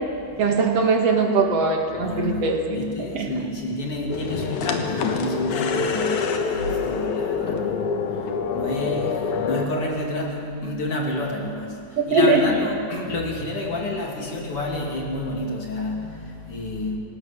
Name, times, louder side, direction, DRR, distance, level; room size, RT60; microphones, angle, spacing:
voice 1, 0.4-3.3 12.1-12.4, right 3 dB, 60° right, 3 dB, 2.8 m, -21 dB
voice 2, 2.0-17.0, left 1 dB, 50° left, -1 dB, 3.6 m, -29 dB
sound 1, 4.1-9.7, left 5 dB, 90° left, 2.8 m, -26 dB
25.5 x 17.0 x 6.6 m, 2.4 s
omnidirectional pair, 3.3 m